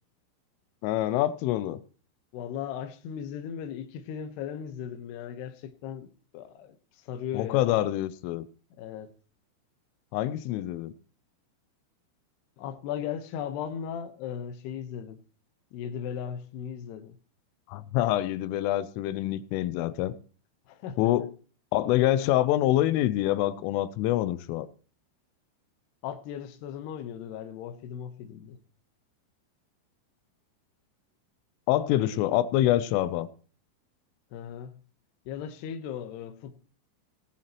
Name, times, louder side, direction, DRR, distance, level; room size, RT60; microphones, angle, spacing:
voice 1, 0.8-1.8 7.3-8.5 10.1-10.9 17.7-20.1 21.0-21.3 21.7-24.7 31.7-33.3, left 14 dB, 90° left, 3.3 m, -26 dB
voice 2, 2.3-7.7 8.8-9.1 12.6-15.2 15.7-17.2 20.7-21.3 26.0-28.6 34.3-34.8 35.3-36.6, left 8 dB, 70° left, 2.8 m, -37 dB
18.0 x 11.0 x 3.0 m
omnidirectional pair, 5.6 m